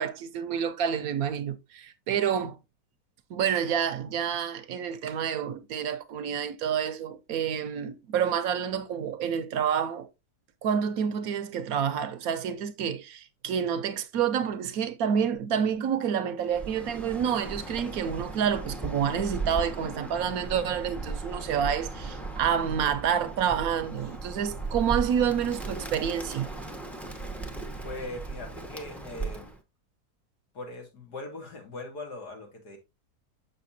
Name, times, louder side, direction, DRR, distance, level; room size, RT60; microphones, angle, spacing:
voice 1, 0.0-2.6 3.3-10.1 10.6-26.5, right 8 dB, 70° right, 1.1 m, -28 dB
Bird, 16.5-29.6, right 3 dB, ahead, 0.4 m, -37 dB
voice 2, 27.8-29.5 30.5-32.8, left 2 dB, 90° left, 2.5 m, -40 dB
6.7 x 6.6 x 2.6 m
omnidirectional pair, 1.7 m